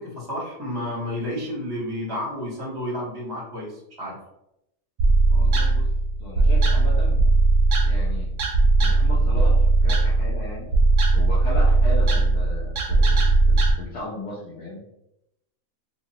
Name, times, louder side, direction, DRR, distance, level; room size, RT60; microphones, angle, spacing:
voice 1, 0.0-3.7 4.0-4.1, left 1 dB, 20° right, -3 dB, 0.8 m, -31 dB
sound 1, 5.0-13.7, right 2 dB, 65° right, 0.9 m, -19 dB
voice 2, 5.3-5.9 6.2-7.3 7.8-8.3 8.8-10.7 11.1-14.8, left 1 dB, 60° left, -5 dB, 0.9 m, -36 dB
2.9 x 2.4 x 2.8 m, 0.81 s
omnidirectional pair, 1.5 m